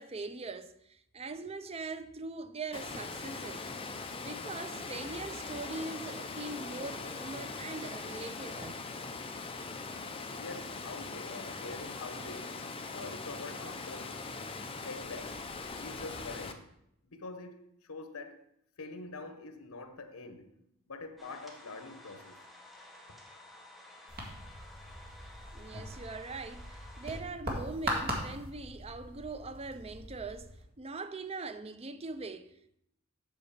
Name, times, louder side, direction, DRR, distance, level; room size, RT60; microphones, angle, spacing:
voice 1, 0.0-3.7 4.2-8.8 25.5-30.5 30.8-32.8, right 3 dB, 30° right, 0.5 m, -42 dB
Water, 2.7-16.5, left 4 dB, 25° left, 0.6 m, -41 dB
voice 2, 10.3-14.2 14.8-15.4 15.7-16.7 17.0-18.4 18.8-20.5 20.9-22.4 23.1-23.2, left 3 dB, 80° left, 1.1 m, -45 dB
sound 1, 21.2-27.2, left 1 dB, ahead, 1.4 m, -53 dB
sound 2, 24.1-30.6, right 1 dB, 45° right, 2.0 m, -40 dB
7.9 x 5.3 x 6.7 m
head